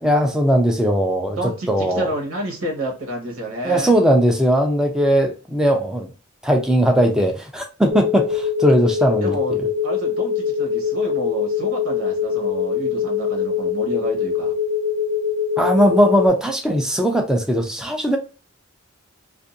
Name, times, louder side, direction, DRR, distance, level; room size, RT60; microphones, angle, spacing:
voice 1, 0.0-2.1 3.6-6.1 6.4-9.7 15.6-18.2, equal, 5° right, 2 dB, 0.4 m, -19 dB
voice 2, 1.3-4.0 9.2-9.6 9.8-14.6, right 1 dB, 85° right, 0 dB, 1.3 m, -29 dB
sound 1, 7.9-16.3, left 6 dB, 25° right, 0.8 m, -23 dB
2.6 x 2.5 x 2.5 m, 0.34 s
head